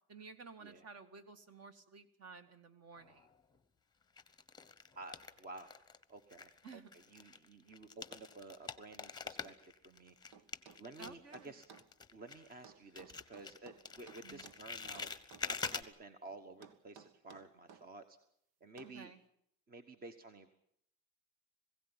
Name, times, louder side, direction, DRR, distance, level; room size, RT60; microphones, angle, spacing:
voice 1, 0.1-3.3 6.6-7.0 11.0-11.5 14.2-14.5 18.8-19.2, right 4 dB, 40° right, 9 dB, 2.3 m, -54 dB
sound 1, 3.0-3.6 4.2-6.0 6.3-12.7 12.9-15.8, left 5 dB, 10° left, 1.1 m, -46 dB
voice 2, 4.9-5.7 6.1-6.8 7.1-10.2 10.8-11.6 12.1-15.1 15.4-18.2 18.6-19.1 19.7-20.5, right 2 dB, 25° right, 9 dB, 1.3 m, -52 dB
sound 2, 10.3-11.9 12.6-14.6 15.0-15.9 16.6-17.9 18.8-19.0, right 6 dB, 80° right, 1.9 m, -57 dB
21.5 x 16.5 x 9.8 m, 0.73 s
cardioid pair, 145°, 38 cm